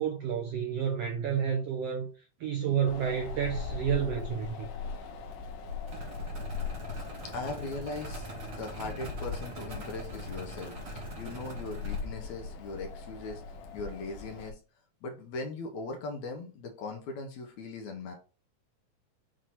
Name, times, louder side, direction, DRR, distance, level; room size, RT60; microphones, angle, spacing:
voice 1, 0.0-4.7, right 8 dB, 70° right, 1.6 m, -30 dB
Wind, 2.9-14.5, left 5 dB, 85° left, 2.6 m, -40 dB
sound 1, 5.9-12.0, right 2 dB, 45° right, 1.0 m, -43 dB
voice 2, 6.9-13.4 13.7-14.5 15.0-18.1, left 3 dB, 70° left, 2.2 m, -39 dB
7.7 x 3.0 x 4.2 m
omnidirectional pair, 3.7 m